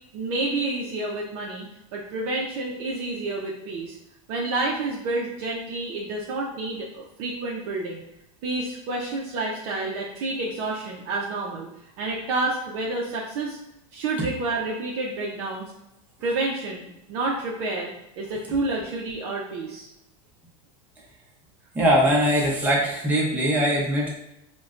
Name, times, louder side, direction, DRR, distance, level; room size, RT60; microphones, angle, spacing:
voice 1, 0.1-1.7 1.9-4.0 4.3-8.0 8.4-11.7 12.0-13.6 13.9-15.7 16.2-16.8 17.1-17.9 18.2-19.9, right 2 dB, 45° right, -3 dB, 0.5 m, -29 dB
voice 2, 21.7-24.1, equal, 10° right, -4 dB, 0.7 m, -21 dB
5.0 x 2.1 x 2.4 m, 0.88 s
supercardioid pair, 160°, 18 cm